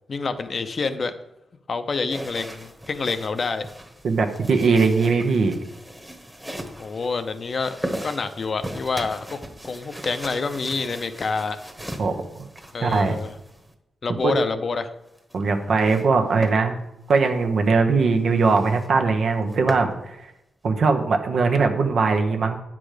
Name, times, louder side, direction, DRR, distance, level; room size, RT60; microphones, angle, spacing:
voice 1, 0.1-1.1 1.7-3.6 6.8-9.3 9.6-11.6 12.7-13.3 14.0-14.9, left 4 dB, 50° left, 9 dB, 0.7 m, -27 dB
sound 1, 2.1-13.7 15.0-16.1 16.4-16.6 17.1-17.2 17.7-17.8 18.0-18.1 18.4-18.9 19.3-19.9, equal, 5° right, 1.2 m, -37 dB
voice 2, 4.0-5.5 12.0-12.1 12.8-13.2 14.2-14.3 15.3-16.8 17.1-20.3 20.6-22.6, right 4 dB, 70° right, 5 dB, 1.1 m, -20 dB
9.1 x 6.1 x 5.0 m, 0.90 s
cardioid pair, 85°, 0 cm